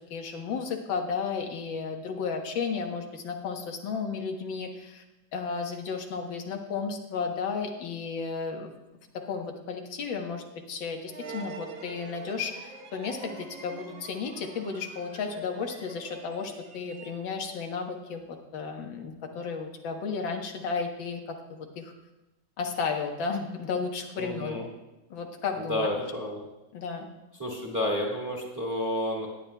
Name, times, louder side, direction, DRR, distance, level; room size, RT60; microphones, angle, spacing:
voice 1, 0.1-5.0 5.3-8.7 9.3-21.9 22.6-24.6 25.1-25.9 26.7-27.1, left 5 dB, 85° left, 3 dB, 1.8 m, -33 dB
sound 1, 11.1-17.5, right 4 dB, 60° right, 1.4 m, -45 dB
voice 2, 24.1-24.7 25.5-26.4 27.3-29.3, left 1 dB, 10° right, -1 dB, 1.6 m, -30 dB
18.0 x 8.9 x 2.2 m, 0.99 s
omnidirectional pair, 2.0 m